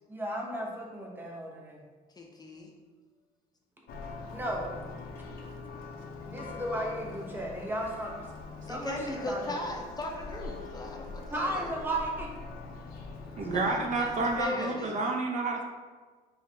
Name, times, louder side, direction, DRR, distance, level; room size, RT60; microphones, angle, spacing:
voice 1, 0.1-1.8 4.3-4.8 6.2-8.2 8.7-9.6 11.3-12.3, right 1 dB, 10° right, -1 dB, 0.9 m, -34 dB
voice 2, 2.2-2.7 8.7-11.7 13.4-14.1 14.4-14.9, left 2 dB, 25° left, 0 dB, 0.5 m, -38 dB
Church bell, 3.9-14.4, left 3 dB, 65° left, 0.6 m, -43 dB
voice 3, 13.3-15.6, right 3 dB, 45° right, 2 dB, 0.6 m, -29 dB
4.7 x 2.5 x 3.3 m, 1.4 s
cardioid pair, 110°, 17 cm